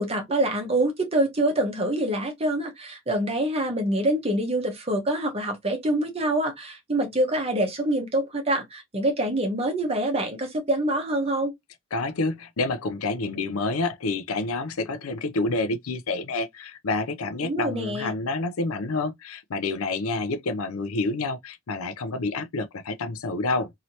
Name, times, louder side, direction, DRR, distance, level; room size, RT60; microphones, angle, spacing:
voice 1, 0.0-11.5 17.4-18.1, right 1 dB, 30° right, 1.1 m, -25 dB
voice 2, 11.9-23.7, left 3 dB, 85° left, 0.6 m, -28 dB
3.1 x 2.8 x 2.8 m
head